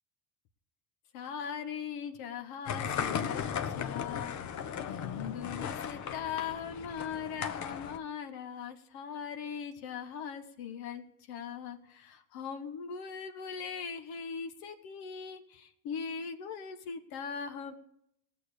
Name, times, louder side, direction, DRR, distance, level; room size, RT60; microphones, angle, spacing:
voice 1, 1.1-4.3 4.9-17.7, left 7 dB, 65° left, 8 dB, 1.3 m, -40 dB
sound 1, 2.6-8.0, left 8 dB, 45° left, 1.1 m, -36 dB
18.5 x 6.9 x 4.9 m, 0.76 s
hypercardioid pair, 80°, 39 cm